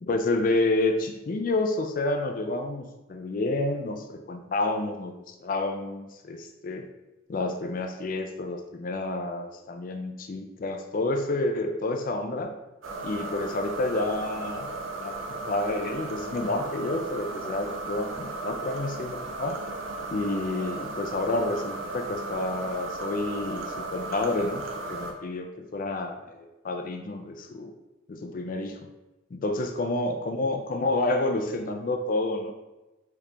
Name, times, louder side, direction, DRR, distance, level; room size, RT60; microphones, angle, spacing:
voice 1, 0.0-6.9 7.3-12.5 13.0-14.7 15.0-19.6 20.1-27.7 28.1-28.8 29.3-32.5, left 2 dB, 45° left, 5 dB, 0.4 m, -29 dB
sound 1, 12.8-25.1, right 2 dB, 85° right, 0.7 m, -35 dB
4.8 x 3.2 x 3.3 m, 1.0 s
head